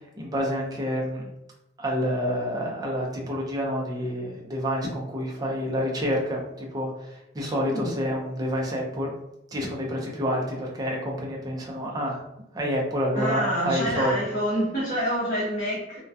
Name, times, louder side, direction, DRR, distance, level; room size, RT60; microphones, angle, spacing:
voice 1, 0.2-1.3 1.8-9.1 9.5-12.2 12.5-14.2, equal, 20° right, -2 dB, 0.5 m, -28 dB
voice 2, 7.6-8.0 13.2-16.0, equal, 40° left, -8 dB, 0.8 m, -27 dB
2.2 x 2.2 x 2.6 m, 0.91 s
head